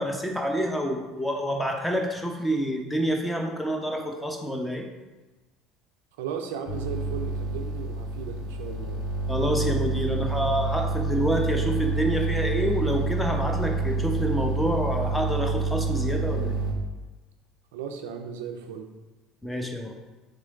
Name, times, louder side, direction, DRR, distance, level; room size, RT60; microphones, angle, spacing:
voice 1, 0.0-4.8 9.3-16.5 19.4-19.9, equal, 5° left, 2 dB, 0.8 m, -27 dB
voice 2, 6.2-9.0 17.7-18.9, right 7 dB, 80° right, 5 dB, 0.4 m, -36 dB
sound 1, 6.7-16.7, right 3 dB, 65° left, 1.3 m, -28 dB
3.7 x 3.2 x 3.8 m, 1.2 s
hypercardioid pair, 70°, 0 cm